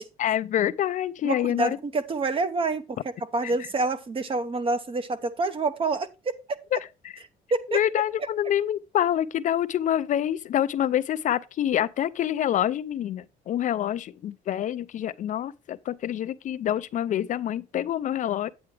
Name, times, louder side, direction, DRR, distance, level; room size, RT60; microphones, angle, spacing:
voice 1, 0.2-1.8 3.4-3.7 6.7-6.8 7.0-7.1 7.7-18.5, left 11 dB, 50° left, 0.4 m, -26 dB
voice 2, 1.2-3.0 3.3-6.4 7.5-7.8, right 3 dB, 30° right, 0.8 m, -27 dB
8.8 x 8.6 x 3.3 m
cardioid pair, 110°, 17 cm